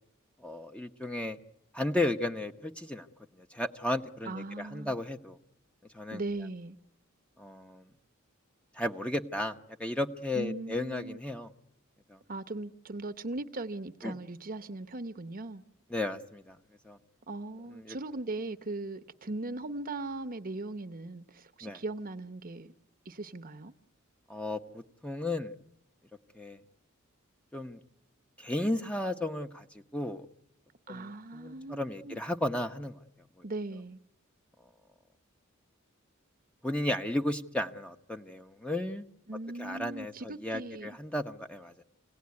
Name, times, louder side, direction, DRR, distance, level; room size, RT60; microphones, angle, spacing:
voice 1, 0.4-1.4 1.7-3.1 3.4-5.4 5.9-6.2 7.4-7.8 8.7-11.5 12.1-12.2 14.0-14.2 15.9-16.6 16.8-17.0 17.7-18.0 21.6-21.8 24.3-25.5 26.3-26.6 27.5-27.8 28.4-29.7 29.9-30.3 30.9-33.0 36.6-39.0 39.6-41.8, left 1 dB, 5° left, 0.9 m, -34 dB
voice 2, 4.2-5.0 6.1-6.8 10.3-11.2 12.3-15.6 17.3-22.7 23.0-23.7 30.9-32.2 33.4-34.0 39.3-41.0, right 2 dB, 45° right, 0.9 m, -39 dB
27.5 x 18.0 x 9.6 m
head